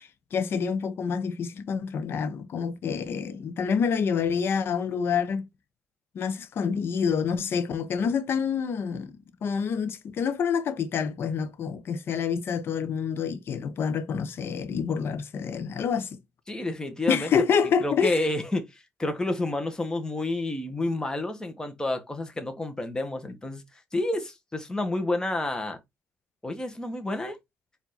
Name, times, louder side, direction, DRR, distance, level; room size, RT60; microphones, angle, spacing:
voice 1, 0.0-5.5 6.1-16.2 17.1-18.2, left 6 dB, 60° left, 0.9 m, -27 dB
voice 2, 16.5-17.3 17.8-18.7 19.0-23.6 23.9-25.8 26.4-27.4, left 2 dB, 15° left, 1.3 m, -29 dB
4.5 x 2.8 x 4.1 m
cardioid pair, 80°, 5 cm